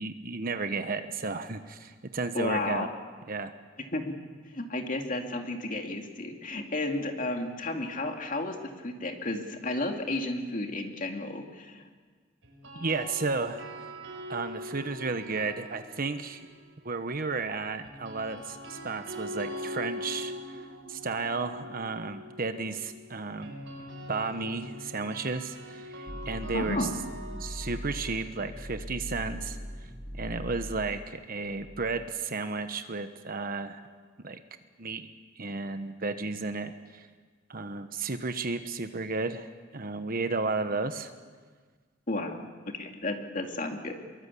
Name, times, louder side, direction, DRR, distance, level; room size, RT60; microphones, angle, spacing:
voice 1, 0.0-2.9 3.3-3.5 12.7-13.6 14.3-16.5 16.8-20.6 20.9-23.5 24.1-26.9 27.4-29.6 30.2-33.8 34.2-34.4 34.8-35.1 35.4-37.1 37.5-39.5 39.7-41.1, right 3 dB, 50° right, 9 dB, 1.2 m, -33 dB
voice 2, 2.3-2.9 3.9-4.1 4.4-11.9 26.5-26.9 42.1-42.4 42.7-44.0, left 2 dB, 45° left, 3 dB, 2.5 m, -32 dB
sound 1, 12.4-16.6 17.8-29.7, equal, 85° right, 6.1 m, -43 dB
sound 2, 26.1-32.1, equal, 20° left, 2.8 m, -41 dB
24.0 x 23.0 x 8.5 m, 1.5 s
head